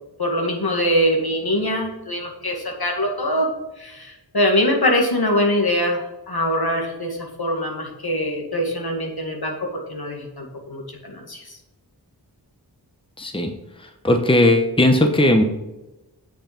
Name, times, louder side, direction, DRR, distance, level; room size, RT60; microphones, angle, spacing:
voice 1, 0.2-3.5 3.8-9.5 9.9-11.4, equal, 60° left, 1 dB, 2.3 m, -23 dB
voice 2, 13.2-13.5 13.8-15.4, left 1 dB, 10° left, 5 dB, 1.0 m, -17 dB
7.8 x 6.7 x 5.2 m, 0.99 s
wide cardioid pair, 40°, 41 cm